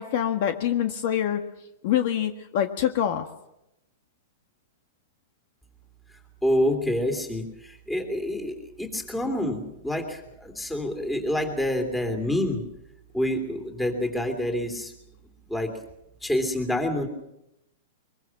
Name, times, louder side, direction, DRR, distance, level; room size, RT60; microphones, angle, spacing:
voice 1, 0.0-1.4 1.8-3.3, left 10 dB, 50° left, 7 dB, 1.6 m, -25 dB
voice 2, 6.4-12.6 13.1-14.9 15.5-15.7 16.2-17.1, left 1 dB, 5° left, 5 dB, 3.0 m, -27 dB
24.0 x 23.0 x 6.0 m, 0.85 s
supercardioid pair, 160°, 0 cm